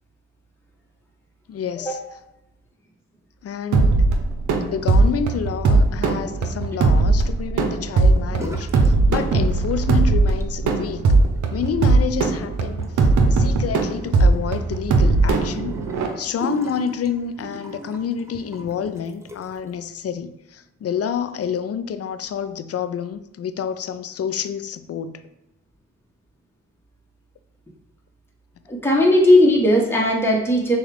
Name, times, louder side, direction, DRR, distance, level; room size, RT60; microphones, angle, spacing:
voice 1, 1.5-2.0 3.4-4.0 4.6-11.1 11.5-15.8 16.2-25.2, left 7 dB, 55° left, 0.4 m, -28 dB
sound 1, 3.7-16.1, right 3 dB, 80° right, 0.7 m, -19 dB
sound 2, 8.3-8.9 9.2-9.9 10.2-19.7, right 1 dB, 10° right, 0.7 m, -39 dB
voice 2, 28.7-30.8, left 1 dB, 10° left, 1.1 m, -17 dB
6.4 x 2.4 x 3.4 m
supercardioid pair, 45°, 29 cm